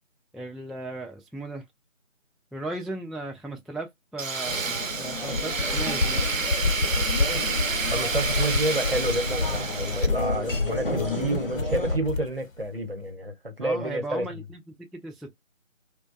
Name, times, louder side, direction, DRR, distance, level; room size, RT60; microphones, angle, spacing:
voice 1, 0.3-1.6 2.5-6.2 13.6-14.6 15.0-15.4, right 2 dB, ahead, 0.3 m, -36 dB
Tools, 4.2-10.1, right 5 dB, 80° right, 0.7 m, -29 dB
sound 1, 4.4-12.0, left 2 dB, 45° left, 0.7 m, -34 dB
sound 2, 5.3-12.3, left 3 dB, 85° left, 0.8 m, -29 dB
voice 2, 7.9-14.4, right 1 dB, 45° right, 0.8 m, -29 dB
2.8 x 2.2 x 2.5 m
figure-of-eight pair, 170°, 39 cm